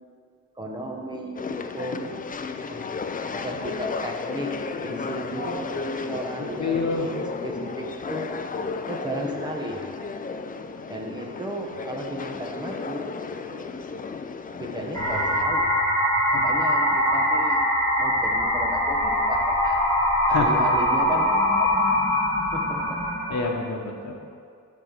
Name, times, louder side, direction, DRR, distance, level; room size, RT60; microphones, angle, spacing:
voice 1, 0.6-2.2 2.7-2.9 3.3-4.5 4.8-8.3 8.9-9.8 10.9-13.1 13.5-13.8 14.6-15.7 16.3-17.7 18.0-19.8 20.3-21.3 21.6-21.9 22.5-23.0, right 1 dB, 15° right, 0 dB, 1.1 m, -34 dB
sound 1, 1.3-15.4, left 4 dB, 25° left, 0.4 m, -33 dB
voice 2, 6.4-7.1 16.3-16.4 20.3-20.7 23.3-24.1, left 4 dB, 55° left, 0 dB, 1.3 m, -27 dB
sound 2, 14.9-23.4, equal, 10° left, 1.8 m, -22 dB
12.0 x 4.2 x 6.8 m, 2.3 s
wide cardioid pair, 155°, 32 cm